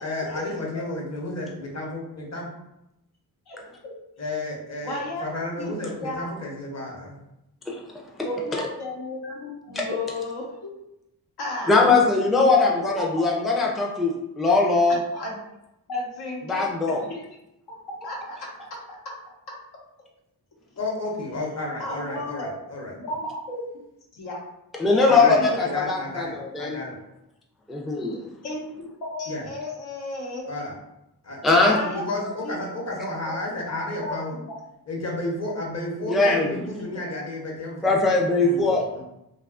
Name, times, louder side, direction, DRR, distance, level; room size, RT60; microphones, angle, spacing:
voice 1, 0.0-2.5 4.2-7.2 20.8-22.9 25.1-27.0 29.3-29.4 30.5-30.7 31.2-34.3 34.9-37.9 38.4-39.0, left 2 dB, 45° left, -2 dB, 0.8 m, -32 dB
voice 2, 0.5-0.9 3.5-3.6 4.3-4.4 4.8-5.2 5.6-5.7 6.0-6.3 8.2-10.7 11.4-11.7 12.3-12.5 13.2-13.3 15.1-15.4 15.9-17.2 18.0-18.8 21.8-22.5 23.0-23.6 24.1-24.4 24.9-25.8 28.4-28.6 29.1-30.5 31.6-32.6 34.0-34.2 38.6-38.7, left 2 dB, 85° left, -2 dB, 0.8 m, -33 dB
voice 3, 11.7-15.0 16.5-17.0 24.8-26.8 27.7-28.2 31.4-31.8 36.1-36.6 37.8-38.8, left 3 dB, ahead, -1 dB, 0.4 m, -20 dB
2.6 x 2.3 x 2.4 m, 0.87 s
cardioid pair, 65°, 38 cm